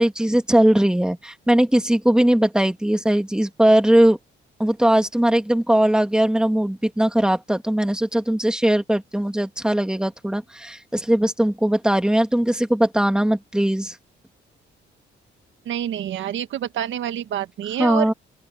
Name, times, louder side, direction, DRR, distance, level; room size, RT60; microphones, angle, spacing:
voice 1, 0.0-4.2 4.6-14.0 17.8-18.1, right 1 dB, 5° right, 2.3 m, -19 dB
voice 2, 15.6-18.1, right 11 dB, 75° right, 1.6 m, -27 dB
open air
cardioid pair, 90°, 20 cm